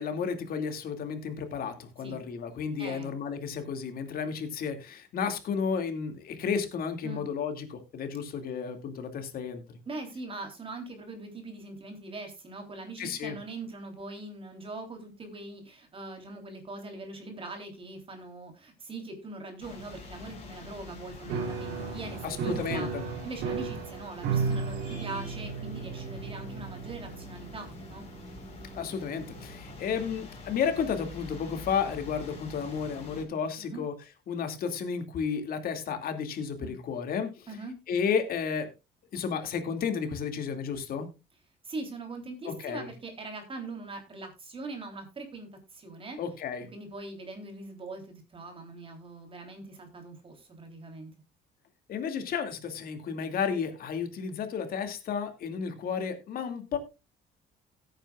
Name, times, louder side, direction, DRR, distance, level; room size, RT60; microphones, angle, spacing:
voice 1, 0.0-9.8 13.0-13.4 22.2-23.0 28.8-33.9 34.3-37.5 37.9-38.7 39.1-41.1 42.4-42.9 46.2-46.7 51.9-56.8, left 6 dB, 60° left, 7 dB, 2.4 m, -32 dB
voice 2, 2.8-3.1 7.0-7.2 9.9-22.9 23.2-28.1 33.6-33.8 36.6-36.7 37.5-37.8 41.6-46.2 46.7-51.1, right 3 dB, 30° right, 4 dB, 3.5 m, -41 dB
sound 1, 19.6-33.2, left 3 dB, 40° left, 4.5 m, -46 dB
Piano, 21.3-29.8, right 5 dB, 85° right, 3.3 m, -35 dB
17.5 x 9.0 x 2.4 m, 0.26 s
cardioid pair, 110°, 17 cm